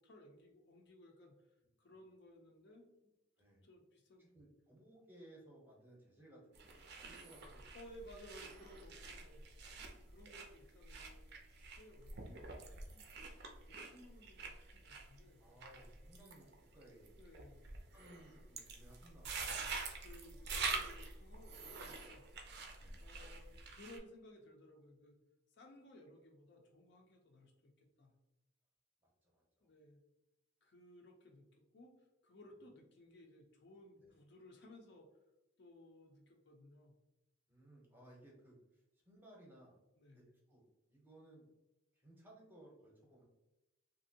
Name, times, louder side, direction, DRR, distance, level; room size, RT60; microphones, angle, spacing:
voice 1, 0.0-1.5 1.8-2.9 3.6-4.2 7.7-9.4 10.1-11.2 11.8-15.4 17.2-17.6 20.0-22.2 23.0-25.2 25.5-28.1 29.6-30.0 30.6-35.1 35.6-36.9 39.9-40.2, left 1 dB, 55° left, 2 dB, 0.5 m, -59 dB
voice 2, 4.2-7.6 9.0-9.1 9.4-9.5 15.4-16.5 16.7-17.2 17.9-19.7 22.8-23.1 29.2-29.7 34.0-34.1 37.5-39.8 40.1-40.6 40.9-41.5 41.9-43.2, right 1 dB, 10° right, -3 dB, 0.7 m, -61 dB
sound 1, 6.5-24.0, right 4 dB, 50° right, 0.4 m, -47 dB
2.9 x 2.6 x 2.7 m, 0.96 s
head